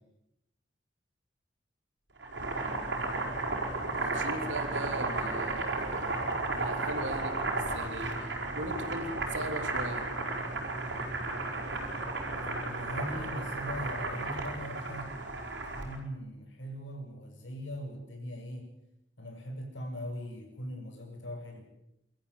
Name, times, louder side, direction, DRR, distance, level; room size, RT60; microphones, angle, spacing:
Boiling, 2.2-16.0, right 2 dB, 65° right, 5.6 m, -34 dB
voice 1, 3.9-6.2 6.5-10.1, right 1 dB, 85° right, 6 dB, 3.2 m, -39 dB
voice 2, 11.6-15.1 15.7-18.7 19.2-21.6, equal, 85° left, 2 dB, 7.2 m, -41 dB
24.5 x 14.0 x 9.6 m, 0.84 s
head